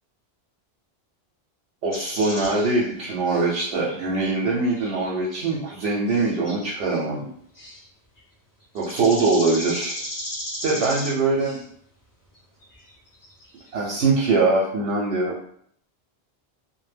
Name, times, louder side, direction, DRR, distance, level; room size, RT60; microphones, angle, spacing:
voice 1, 1.8-7.3 8.7-9.9 10.6-11.6 13.7-15.4, right 3 dB, 85° right, -4 dB, 0.8 m, -22 dB
sound 1, 1.9-4.0 4.8-5.8 6.1-7.0 7.5-7.8 8.2-8.3 8.8-11.6 12.3-12.4 12.6-12.9 13.2-14.0, equal, 30° left, 0.4 m, -36 dB
2.1 x 2.0 x 3.2 m, 0.65 s
omnidirectional pair, 1.1 m